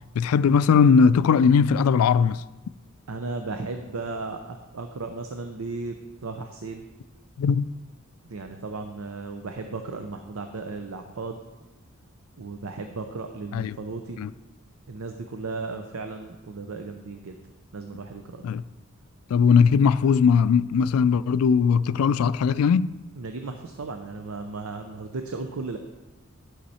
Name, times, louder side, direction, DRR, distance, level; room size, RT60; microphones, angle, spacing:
voice 1, 0.2-2.4 7.4-7.7 13.5-13.8 14.2-14.3 18.4-18.6 19.3-22.9, left 6 dB, 90° left, 0.3 m, -19 dB
voice 2, 3.1-5.9 6.2-6.8 8.3-11.4 12.4-14.2 14.9-17.3 17.7-18.5 23.2-25.8, right 3 dB, 75° right, 0.6 m, -35 dB
11.5 x 5.7 x 4.2 m
head